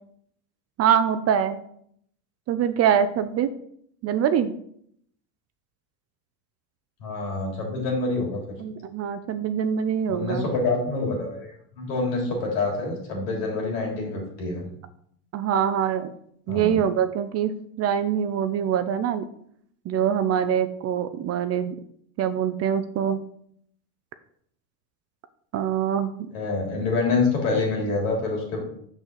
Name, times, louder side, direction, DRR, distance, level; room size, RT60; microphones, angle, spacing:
voice 1, 0.8-1.6 2.5-3.5 4.0-4.5 8.6-10.5 15.3-16.1 16.5-17.5 17.8-19.2 19.9-21.8 22.2-23.2 25.5-26.3, right 8 dB, 35° right, 11 dB, 0.5 m, -24 dB
voice 2, 7.0-8.4 10.1-14.7 16.5-16.8 26.3-28.6, left 3 dB, 80° left, 0 dB, 3.3 m, -26 dB
6.4 x 6.2 x 4.0 m, 0.67 s
supercardioid pair, 110°, 48 cm